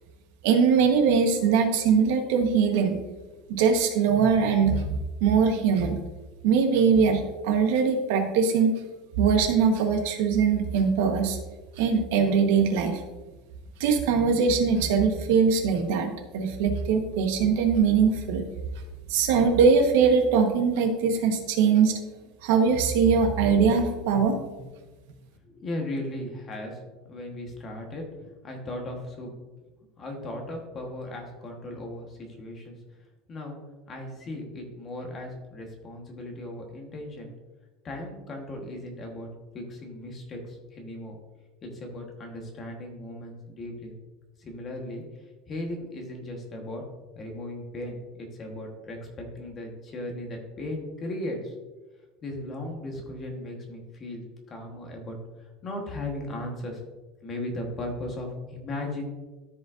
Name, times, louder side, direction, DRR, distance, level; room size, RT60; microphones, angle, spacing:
voice 1, 0.4-3.0 3.5-4.9 5.2-6.0 6.4-8.7 9.2-11.4 11.8-13.0 13.8-18.5 19.1-22.0 22.4-24.4, right 6 dB, 65° right, 4 dB, 1.1 m, -22 dB
voice 2, 25.4-26.8 27.1-28.0 28.4-29.3 30.0-32.8 33.3-33.6 33.9-37.3 37.8-39.3 39.5-41.2 41.6-43.9 44.4-45.0 45.5-46.8 47.1-51.5 52.2-56.8 57.2-59.0, left 1 dB, 20° left, 2 dB, 1.2 m, -37 dB
13.5 x 5.1 x 2.5 m, 1.2 s
cardioid pair, 180°, 0 cm